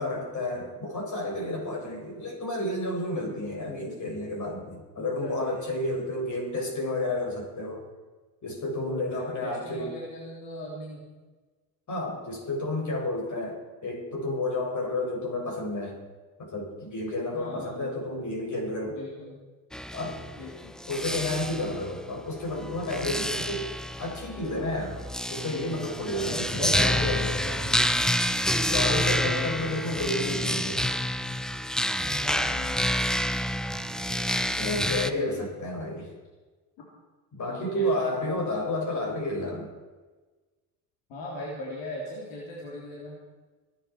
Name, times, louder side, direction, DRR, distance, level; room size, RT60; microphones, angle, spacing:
voice 1, 0.0-7.8 8.4-9.9 11.9-16.0 16.4-19.0 19.9-20.2 20.9-23.7 24.0-25.0 25.3-27.4 28.5-30.8 34.5-36.1 37.3-39.7, left 1 dB, 40° left, 0 dB, 6.8 m, -31 dB
voice 2, 5.0-5.6 8.9-11.1 17.3-17.8 18.9-19.4 20.4-20.8 26.1-27.9 28.8-29.6 32.1-32.8 34.8-35.4 36.8-36.9 37.5-37.9 41.1-43.2, left 1 dB, 70° left, -4 dB, 3.7 m, -38 dB
sound 1, 19.7-35.1, equal, ahead, 0.6 m, -28 dB
25.0 x 10.0 x 4.7 m, 1.3 s
supercardioid pair, 90°, 45 cm